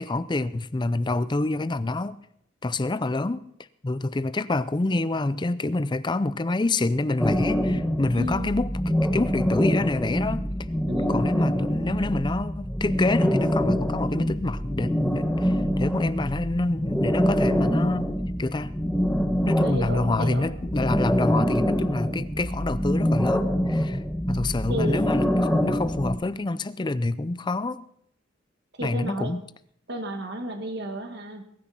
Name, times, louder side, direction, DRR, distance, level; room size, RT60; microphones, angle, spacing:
voice 1, 0.0-2.2 2.6-3.4 3.8-8.7 9.1-10.5 11.1-18.1 18.4-18.8 19.4-24.0 24.3-27.9 28.8-29.4, left 2 dB, 25° left, 0.5 m, -27 dB
sound 1, 7.2-26.2, equal, 5° left, 1.1 m, -25 dB
voice 2, 8.1-8.5 10.9-11.2 19.6-20.6 24.7-25.0 28.8-29.3 29.9-31.5, right 1 dB, 55° right, 1.8 m, -32 dB
21.5 x 9.7 x 4.2 m
head